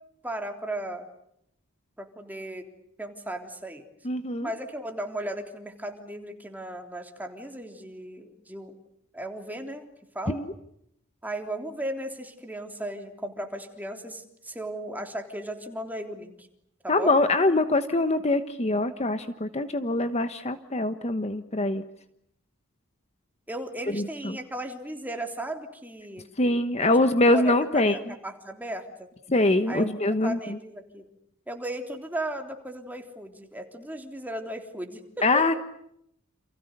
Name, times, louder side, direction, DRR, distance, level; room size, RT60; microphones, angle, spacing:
voice 1, 0.2-1.0 2.0-2.7 3.0-3.8 4.4-8.7 9.1-9.9 10.1-10.4 11.2-16.5 16.8-17.2 23.5-26.2 26.8-29.1 29.7-30.0 30.2-31.0 31.5-35.4, right 1 dB, 10° right, 4 dB, 3.5 m, -36 dB
voice 2, 4.0-4.5 10.3-10.5 16.9-21.8 23.9-24.4 26.4-28.0 29.3-30.4 35.2-35.5, left 2 dB, 30° left, 10 dB, 1.2 m, -23 dB
30.0 x 28.5 x 6.7 m, 0.74 s
head